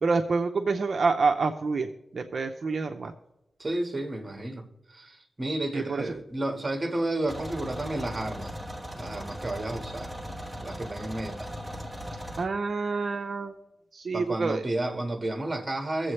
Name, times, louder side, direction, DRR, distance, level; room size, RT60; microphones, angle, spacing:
voice 1, 0.0-3.1 5.7-6.0 12.4-13.5 13.9-14.6, right 4 dB, 60° right, 4 dB, 0.6 m, -27 dB
voice 2, 3.6-8.6 9.0-10.1 10.6-11.5 14.1-16.1, right 1 dB, 25° right, 4 dB, 1.7 m, -32 dB
sound 1, 7.3-12.5, equal, ahead, 1.1 m, -38 dB
22.5 x 7.7 x 3.3 m, 0.91 s
wide cardioid pair, 95°, 0 cm